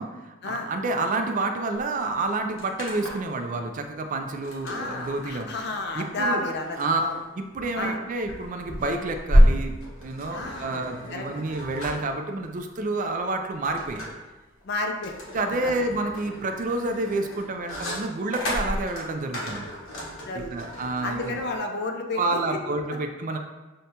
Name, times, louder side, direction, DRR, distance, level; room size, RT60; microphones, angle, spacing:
voice 1, 0.0-5.5 5.9-6.4 6.8-7.0 7.4-14.1 15.3-19.7 20.3-21.4 22.2-23.4, right 2 dB, 40° right, 5 dB, 0.4 m, -29 dB
sound 1, 1.7-1.8 2.1-3.4 4.4-21.6, equal, 85° left, 1.1 m, -29 dB
voice 2, 4.6-7.1 7.7-8.0 10.3-10.8 11.1-11.3 14.6-15.1 15.6-15.7 20.2-20.7 21.0-22.4, left 2 dB, 55° left, 3 dB, 0.5 m, -31 dB
6.4 x 2.2 x 2.8 m, 1.2 s
head